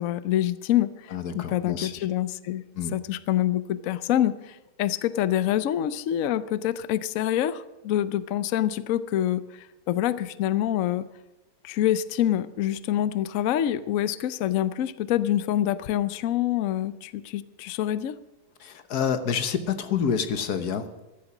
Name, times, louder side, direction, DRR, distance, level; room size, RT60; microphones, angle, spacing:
voice 1, 0.0-2.6 2.9-11.0 11.6-18.1, left 12 dB, 80° left, 15 dB, 0.7 m, -26 dB
voice 2, 1.1-2.1 2.7-3.0 18.6-21.0, left 7 dB, 60° left, 10 dB, 1.5 m, -28 dB
15.5 x 12.0 x 6.0 m, 1.0 s
omnidirectional pair, 2.1 m